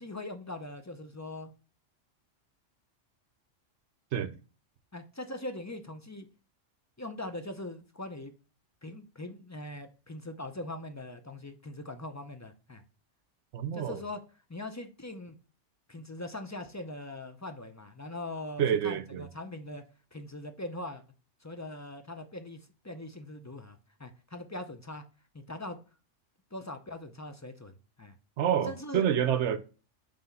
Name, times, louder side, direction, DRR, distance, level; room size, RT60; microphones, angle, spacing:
voice 1, 0.0-1.5 4.9-6.3 7.0-8.3 8.8-12.8 13.7-14.2 14.5-15.4 15.9-19.8 20.1-21.0 21.4-25.0 25.3-25.8 26.5-28.1 28.6-29.1, left 1 dB, 25° left, 0.3 m, -41 dB
voice 2, 13.5-14.0 18.6-19.3 28.4-29.6, right 9 dB, 70° right, 1.0 m, -28 dB
5.8 x 3.5 x 5.5 m
omnidirectional pair, 1.3 m